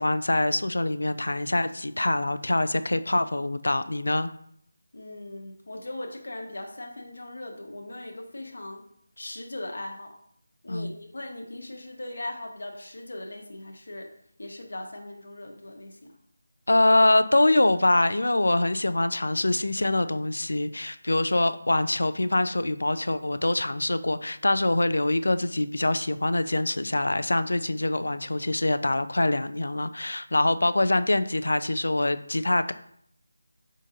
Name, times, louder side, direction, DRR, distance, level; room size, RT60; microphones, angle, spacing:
voice 1, 0.0-4.3 10.7-10.9 16.7-32.7, left 2 dB, 85° left, 12 dB, 0.4 m, -24 dB
voice 2, 4.9-8.9 9.2-10.2 10.6-14.1 14.4-16.1, left 1 dB, 65° left, 2 dB, 0.9 m, -39 dB
5.0 x 3.7 x 2.7 m, 0.67 s
figure-of-eight pair, 175°, 0 cm